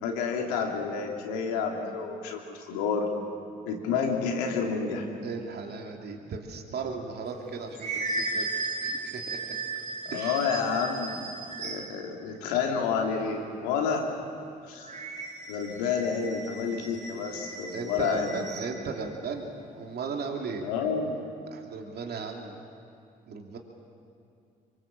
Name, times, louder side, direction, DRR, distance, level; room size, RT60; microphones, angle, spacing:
voice 1, 0.0-3.1 3.6-5.1 10.0-11.2 11.6-14.1 14.6-14.9 15.5-18.3 20.6-21.2, left 5 dB, 80° left, 2 dB, 2.8 m, -29 dB
voice 2, 5.2-8.5 8.8-9.6 10.1-10.7 17.7-19.5 19.8-20.6 21.5-22.6 23.3-23.6, right 5 dB, 55° right, 2 dB, 2.9 m, -36 dB
sound 1, 7.3-12.1 14.8-18.8, right 3 dB, 35° right, 3.2 m, -36 dB
25.0 x 24.5 x 7.5 m, 2.5 s
hypercardioid pair, 50°, 20 cm